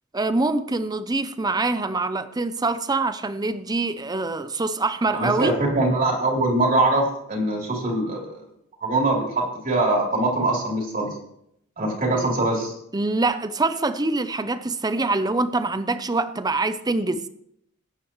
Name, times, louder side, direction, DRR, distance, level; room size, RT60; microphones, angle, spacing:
voice 1, 0.1-5.6 12.1-12.3 12.9-17.3, right 3 dB, 15° right, 0.6 m, -24 dB
voice 2, 5.1-8.4 8.8-11.1 11.8-12.7, right 2 dB, 40° right, 3.5 m, -23 dB
19.5 x 9.0 x 3.1 m
head